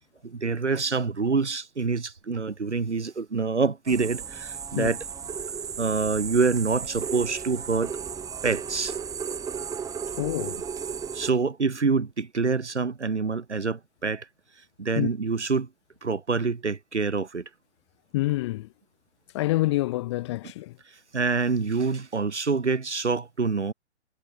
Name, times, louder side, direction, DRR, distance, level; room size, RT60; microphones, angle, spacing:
voice 1, 0.2-5.0 5.8-7.9 8.4-9.0 11.1-14.3 14.8-15.7 16.0-17.4 21.1-23.7, right 4 dB, 75° right, 3.7 m, -26 dB
sound 1, 3.9-11.3, right 7 dB, 10° right, 2.9 m, -34 dB
voice 2, 10.2-10.6 15.0-15.1 18.1-18.7 19.3-20.7, left 18 dB, 25° left, 0.8 m, -27 dB
figure-of-eight pair, 130°, 35 cm